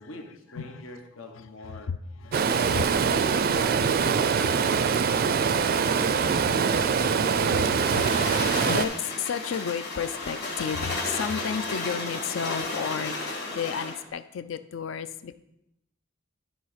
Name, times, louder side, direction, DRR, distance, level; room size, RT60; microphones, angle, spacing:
voice 1, 0.0-1.9 3.5-3.8 4.3-4.8 5.6-7.2, left 2 dB, 90° left, 3 dB, 1.3 m, -45 dB
voice 2, 1.3-4.7 5.1-5.9 6.4-15.4, left 7 dB, 70° left, 11 dB, 0.4 m, -34 dB
Stream, 2.3-8.9, right 6 dB, 50° right, 0.4 m, -23 dB
sound 1, 7.5-14.0, left 2 dB, 55° left, 2.1 m, -33 dB
11.0 x 4.0 x 5.0 m, 0.82 s
head